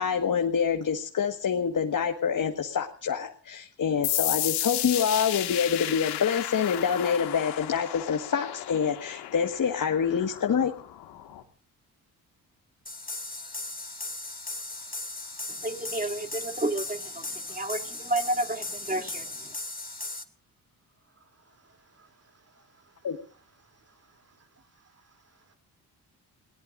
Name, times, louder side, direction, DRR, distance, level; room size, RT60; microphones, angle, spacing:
voice 1, 0.0-10.7 23.0-23.2, left 7 dB, 50° left, 1.7 m, -26 dB
sound 1, 4.0-11.4, left 13 dB, 90° left, 1.9 m, -33 dB
sound 2, 12.9-20.2, left 2 dB, 20° left, 2.4 m, -37 dB
voice 2, 15.5-19.5, right 1 dB, 20° right, 2.9 m, -31 dB
voice 3, 21.2-23.1 23.6-25.6, right 4 dB, 35° right, 3.2 m, -63 dB
29.5 x 18.0 x 2.6 m
supercardioid pair, 60°, 39 cm